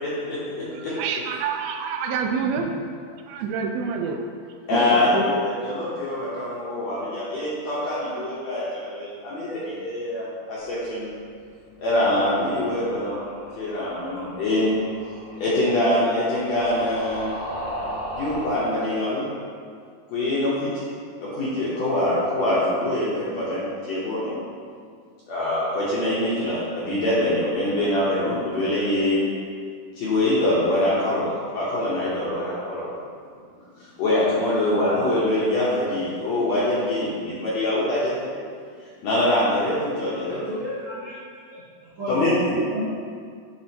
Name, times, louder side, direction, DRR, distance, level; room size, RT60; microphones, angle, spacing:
voice 1, 0.0-1.0 4.7-11.2 11.8-14.7 15.4-17.4 18.1-19.3 20.1-20.7 21.2-24.4 25.3-29.3 30.0-32.9 33.8-38.3 39.0-40.5 42.1-42.5, left 1 dB, 70° left, -9 dB, 1.8 m, -24 dB
voice 2, 0.7-2.7 3.3-4.3, right 6 dB, 90° right, 4 dB, 2.4 m, -27 dB
voice 3, 4.7-5.3 40.3-41.2 41.5-41.6 42.0-42.9, equal, 75° right, -11 dB, 1.1 m, -29 dB
sound 1, 11.9-18.6, equal, 90° left, 3.5 m, -37 dB
10.0 x 3.7 x 2.9 m, 2.1 s
omnidirectional pair, 4.2 m